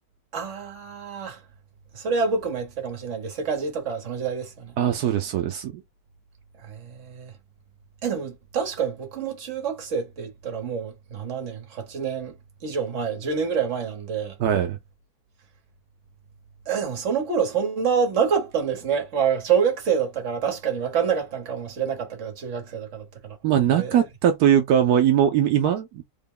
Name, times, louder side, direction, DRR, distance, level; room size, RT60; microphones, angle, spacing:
voice 1, 0.3-1.4 1.9-4.7 6.6-7.3 8.0-12.3 12.6-14.3 16.7-23.4 23.7-24.0, right 6 dB, 55° right, 1.4 m, -27 dB
voice 2, 4.8-5.8 14.4-14.8 23.4-26.0, right 9 dB, 80° right, 1.1 m, -21 dB
3.8 x 2.1 x 3.7 m
omnidirectional pair, 1.6 m